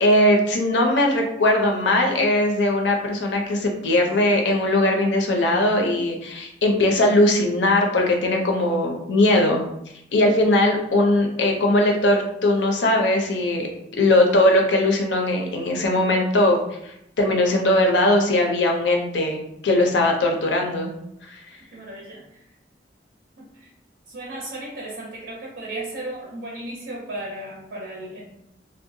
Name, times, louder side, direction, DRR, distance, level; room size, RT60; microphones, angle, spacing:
voice 1, 0.0-9.6 10.1-13.7 14.0-16.6 16.8-20.9 21.3-21.4, left 1 dB, 75° left, 1 dB, 0.5 m, -20 dB
voice 2, 21.7-22.4 23.4-23.7 24.1-28.3, right 1 dB, 65° right, -2 dB, 0.5 m, -35 dB
2.7 x 2.1 x 2.6 m, 0.79 s
head